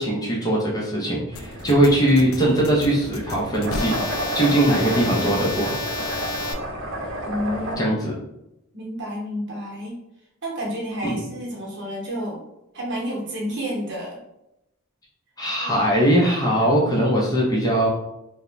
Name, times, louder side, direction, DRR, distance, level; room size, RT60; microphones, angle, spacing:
voice 1, 0.0-5.8 7.8-8.1 11.0-11.2 15.4-17.9, right 1 dB, 20° left, -4 dB, 0.5 m, -21 dB
sound 1, 1.3-7.8, right 1 dB, 85° right, 0.6 m, -31 dB
sound 2, 1.4-6.5, left 3 dB, 80° left, 0.4 m, -32 dB
voice 2, 7.2-8.2 8.7-10.0 10.4-12.4 12.7-14.2 15.6-15.8, equal, 60° right, -3 dB, 0.9 m, -30 dB
2.5 x 2.1 x 3.0 m, 0.89 s
head